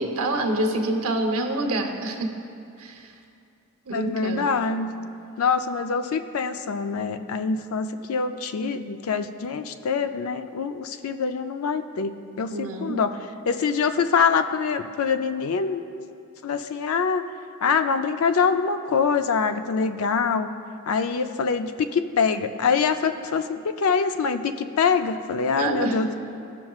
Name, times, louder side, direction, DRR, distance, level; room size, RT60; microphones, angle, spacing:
voice 1, 0.0-2.3 2.8-3.1 3.9-4.6 12.5-13.0 25.6-26.0, right 2 dB, 75° right, 3 dB, 0.9 m, -26 dB
voice 2, 3.9-4.9 5.4-13.2 13.5-15.8 16.4-17.2 17.6-20.5 20.9-26.1, left 5 dB, 75° left, 9 dB, 0.4 m, -24 dB
15.5 x 5.9 x 2.4 m, 2.5 s
head